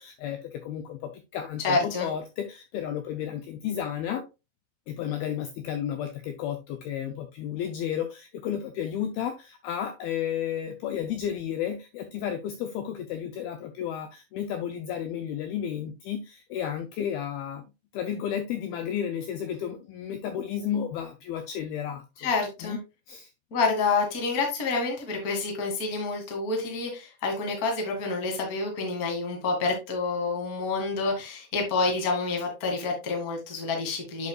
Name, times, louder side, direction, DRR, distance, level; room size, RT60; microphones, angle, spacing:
voice 1, 0.0-4.3 4.9-17.6 17.9-22.3 22.6-22.8 23.1-23.3, left 9 dB, 90° left, 7 dB, 2.1 m, -32 dB
voice 2, 1.6-2.1 22.2-22.8 23.5-34.3, left 3 dB, 40° left, 2 dB, 1.3 m, -28 dB
8.0 x 6.9 x 2.3 m, 0.26 s
omnidirectional pair, 5.1 m